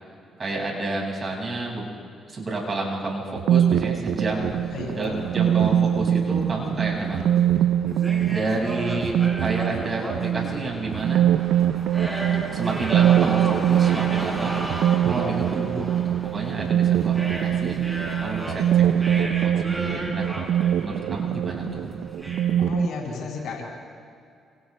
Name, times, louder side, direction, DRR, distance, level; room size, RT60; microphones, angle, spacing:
voice 1, 0.4-1.9 2.3-7.4 8.3-11.2 12.5-14.5 15.0-17.8 18.2-20.3 20.8-21.9, right 2 dB, 35° right, -2 dB, 6.0 m, -30 dB
sound 1, 3.4-22.9, right 10 dB, 80° right, 0.5 m, -23 dB
sound 2, 4.1-22.6, equal, 10° right, 4.8 m, -35 dB
voice 2, 4.7-5.2 22.6-23.6, left 4 dB, 75° left, -2 dB, 7.3 m, -32 dB
29.5 x 27.0 x 3.4 m, 2.4 s
cardioid pair, 90°, 0 cm